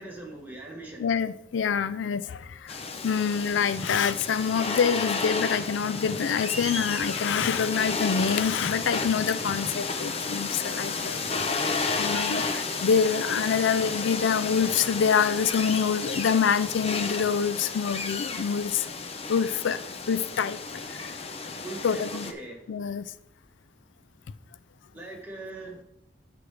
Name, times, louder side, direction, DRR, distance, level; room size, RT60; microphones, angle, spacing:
voice 1, 0.0-1.1 10.6-11.6 21.6-22.7 24.9-25.8, right 2 dB, 10° right, 2.0 m, -42 dB
voice 2, 1.0-2.8 3.0-11.2 12.0-18.9 19.3-19.8 20.1-20.6 20.9-21.0 21.8-22.3 22.7-23.1, left 6 dB, 90° left, 0.4 m, -26 dB
sound 1, 2.7-22.3, left 4 dB, 35° left, 0.7 m, -32 dB
Guitar, 7.5-14.0, left 2 dB, 70° left, 1.5 m, -55 dB
12.5 x 4.8 x 3.4 m
head